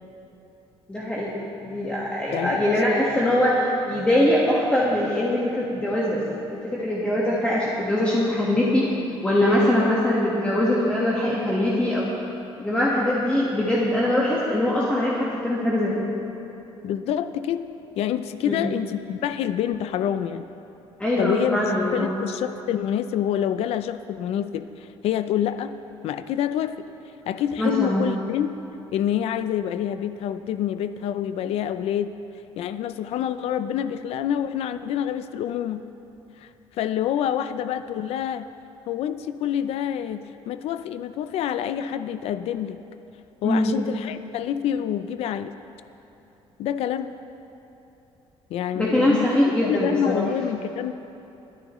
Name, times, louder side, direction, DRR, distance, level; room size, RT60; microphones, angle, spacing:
voice 1, 0.9-6.2 6.5-8.9 9.2-12.1 12.6-15.9 18.4-18.7 21.0-22.1 27.6-28.0 43.4-43.7 48.7-50.2, left 1 dB, 10° left, -7 dB, 1.5 m, -22 dB
voice 2, 2.3-2.6 16.8-17.6 18.0-20.5 21.2-21.6 21.9-25.7 26.0-26.7 27.3-28.5 28.9-32.1 32.6-35.8 36.4-36.5 36.8-38.5 38.9-42.8 43.4-45.5 46.6-47.1 48.5-50.9, left 10 dB, 75° left, 11 dB, 0.5 m, -27 dB
21.5 x 9.9 x 3.1 m, 3.0 s
cardioid pair, 140°, 10 cm